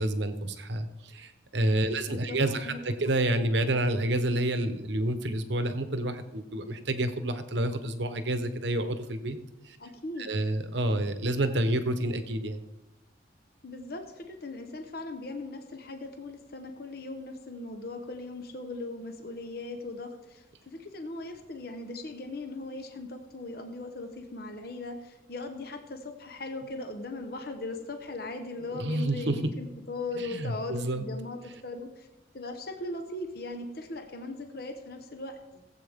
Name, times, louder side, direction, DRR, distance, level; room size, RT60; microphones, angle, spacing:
voice 1, 0.0-9.4 9.6-9.8 10.2-12.6 28.7-29.5 30.1-31.0, right 1 dB, 70° right, 9 dB, 1.0 m, -29 dB
voice 2, 2.1-2.8 9.8-10.3 13.6-32.1 32.3-35.4, left 2 dB, 50° left, 5 dB, 1.0 m, -39 dB
17.5 x 8.1 x 3.6 m, 1.0 s
head